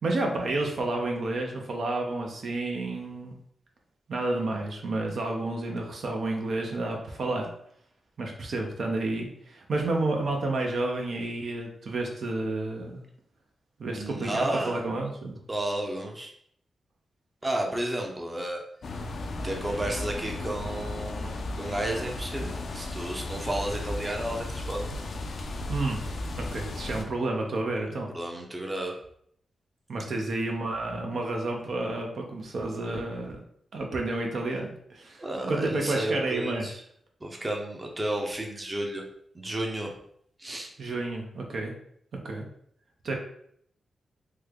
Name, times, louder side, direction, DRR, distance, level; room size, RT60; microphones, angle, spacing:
voice 1, 0.0-3.3 4.1-7.5 8.2-13.0 13.8-15.4 25.7-26.0 26.4-28.1 29.9-33.4 33.7-36.7 40.8-41.7 42.2-42.5 43.0-43.1, right 2 dB, 70° right, 1 dB, 0.6 m, -30 dB
voice 2, 13.9-14.8 15.5-16.3 17.4-18.6 19.3-24.9 28.1-29.0 35.2-36.8 37.2-39.0 39.3-39.9 40.4-40.7, right 1 dB, 25° right, 1 dB, 0.6 m, -32 dB
sound 1, 18.8-27.0, left 2 dB, 70° left, 0.4 m, -35 dB
3.2 x 2.1 x 3.5 m, 0.68 s
cardioid pair, 70°, 0 cm